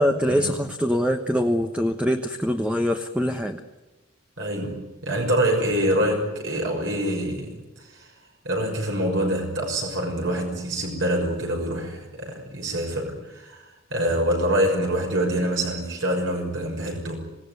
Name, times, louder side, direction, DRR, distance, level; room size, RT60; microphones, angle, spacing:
voice 1, 0.0-3.6, equal, 5° right, 5 dB, 1.2 m, -23 dB
voice 2, 4.4-8.1 8.4-13.6 13.9-17.3, right 1 dB, 60° right, 1 dB, 6.1 m, -25 dB
26.5 x 17.5 x 9.7 m, 1.1 s
head